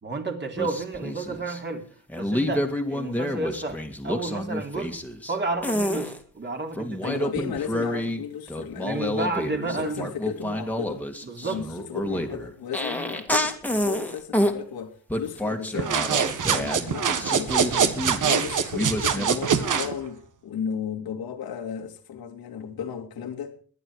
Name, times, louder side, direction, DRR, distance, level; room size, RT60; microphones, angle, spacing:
voice 1, 0.0-1.9 2.1-3.8 4.0-5.0 5.3-7.1 8.8-10.1 11.2-11.6, right 3 dB, 30° right, 3.3 m, -31 dB
sound 1, 0.6-1.6 2.1-5.4 5.6-6.2 6.8-8.2 8.5-14.6 15.1-18.4 18.7-19.4, equal, 5° left, 2.1 m, -29 dB
voice 2, 7.0-9.3 9.6-11.1 11.4-16.0 16.5-18.0 18.2-23.6, left 7 dB, 90° left, 2.7 m, -34 dB
sound 2, 15.8-19.9, right 7 dB, 60° right, 1.8 m, -24 dB
20.5 x 11.0 x 4.9 m
cardioid pair, 120°, 35 cm